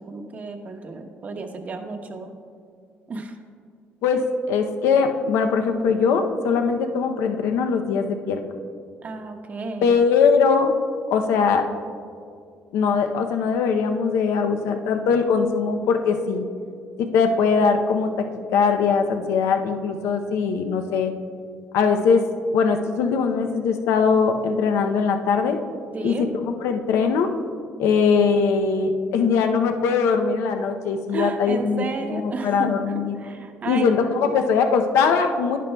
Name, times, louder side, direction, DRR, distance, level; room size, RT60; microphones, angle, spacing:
voice 1, 0.0-2.3 3.1-3.3 9.0-10.0 25.9-26.3 31.1-33.9 34.2-34.4, right 3 dB, 35° right, 5 dB, 0.8 m, -32 dB
voice 2, 4.0-8.4 9.8-10.7 11.1-11.7 12.7-16.4 17.0-21.1 21.7-25.6 26.0-26.3 26.6-27.3 27.8-31.8 32.1-33.2 33.7-35.6, left 5 dB, 90° left, 6 dB, 0.6 m, -21 dB
11.0 x 10.5 x 2.2 m, 2.3 s
cardioid pair, 140°, 5 cm